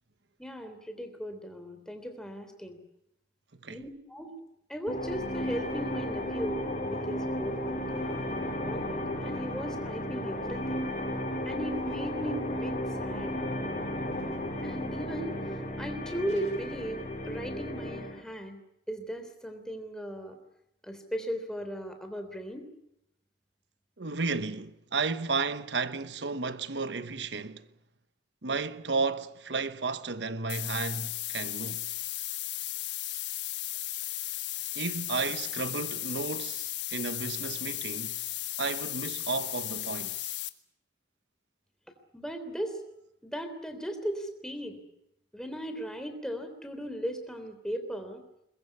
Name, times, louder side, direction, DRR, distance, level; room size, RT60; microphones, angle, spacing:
voice 1, 0.4-2.8 3.7-4.3 4.7-8.2 8.6-10.9 11.4-13.4 14.6-15.3 15.8-18.6 18.9-20.3 20.8-22.7 42.1-42.8 43.2-44.8 45.3-48.2, equal, 5° left, 3.3 m, -37 dB
sound 1, 4.9-18.2, left 1 dB, 40° left, 5.4 m, -34 dB
voice 2, 24.0-27.6 28.4-31.9 34.7-38.2 38.6-40.3, right 4 dB, 85° right, 1.1 m, -33 dB
sound 2, 30.5-40.5, left 15 dB, 90° left, 1.4 m, -35 dB
22.5 x 21.5 x 8.5 m
head